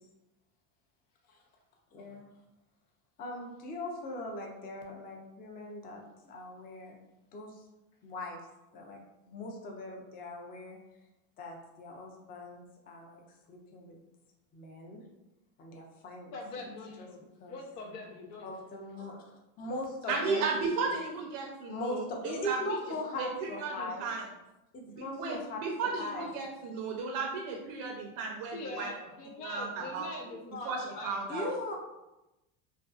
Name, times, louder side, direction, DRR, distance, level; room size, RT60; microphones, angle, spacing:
voice 1, 1.9-2.3 3.2-7.0 7.3-7.6 8.0-8.4 8.7-10.8 11.4-13.2 13.5-14.0 14.5-15.0 15.6-16.7 17.0-17.1 17.4-17.6 18.4-19.2 19.6-20.5 20.9-21.0 21.7-24.1 24.7-25.6 26.0-26.3 31.3-31.7, left 1 dB, 20° left, 0 dB, 0.3 m, -40 dB
voice 2, 16.3-18.5 28.5-31.6, left 2 dB, 90° left, 1 dB, 0.7 m, -43 dB
voice 3, 20.1-22.8 23.2-24.3 24.8-28.9 29.4-30.1 30.6-31.5, right 4 dB, 65° right, -1 dB, 0.6 m, -34 dB
2.5 x 2.3 x 2.3 m, 0.95 s
supercardioid pair, 110°, 46 cm